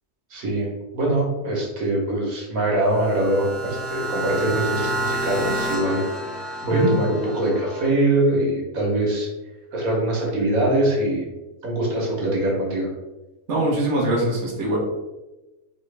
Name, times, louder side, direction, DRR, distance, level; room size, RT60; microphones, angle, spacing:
voice 1, 0.3-0.7 0.9-6.0 6.6-9.3 9.7-11.3 11.6-12.9, right 1 dB, 70° right, -2 dB, 1.4 m, -23 dB
sound 1, 2.8-7.9, right 1 dB, ahead, 0.5 m, -29 dB
voice 2, 13.5-14.8, right 1 dB, 55° right, -3 dB, 1.2 m, -22 dB
4.2 x 3.0 x 3.2 m, 1.1 s
omnidirectional pair, 1.6 m